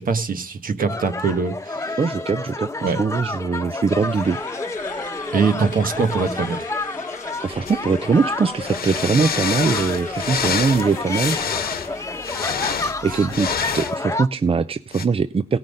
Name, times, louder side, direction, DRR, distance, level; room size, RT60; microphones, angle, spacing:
voice 1, 0.0-2.0 2.8-3.0 5.3-6.6 13.1-13.2, right 5 dB, 60° right, 1.4 m, -22 dB
sound 1, 0.9-14.3, left 2 dB, 20° left, 1.1 m, -30 dB
voice 2, 2.0-4.4 7.4-11.4 12.8-15.6, right 5 dB, 35° right, 0.6 m, -22 dB
sound 2, 3.9-12.3, left 6 dB, 60° left, 0.9 m, -39 dB
sound 3, 7.7-7.8 8.6-14.0 14.9-15.0, left 7 dB, 80° left, 1.4 m, -27 dB
17.5 x 5.9 x 5.2 m
cardioid pair, 75°, 16 cm